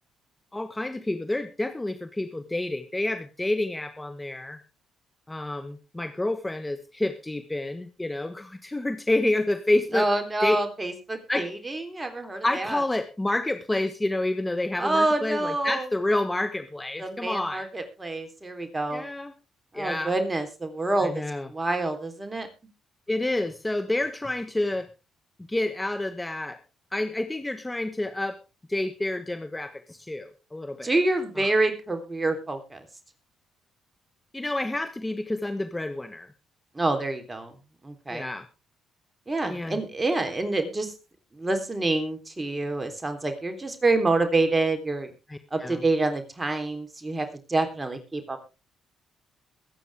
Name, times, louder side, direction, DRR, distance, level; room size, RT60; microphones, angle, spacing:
voice 1, 0.5-4.6 5.3-10.1 10.4-10.6 11.3-11.5 12.4-17.6 18.9-19.3 19.7-20.1 21.0-21.5 23.1-24.9 25.5-26.6 26.9-28.4 28.7-31.0 31.4-31.5 34.3-36.3 38.1-38.5 39.4-39.8 45.3-45.8, left 2 dB, 15° left, 8 dB, 1.4 m, -29 dB
voice 2, 9.9-12.8 14.8-15.9 17.0-19.1 19.7-21.2 21.5-22.5 30.8-32.8 36.7-37.5 37.8-38.3 39.3-40.9 41.3-45.1 45.5-48.4, right 2 dB, 25° right, 7 dB, 3.7 m, -27 dB
22.0 x 9.1 x 3.6 m, 0.31 s
hypercardioid pair, 55°, 0 cm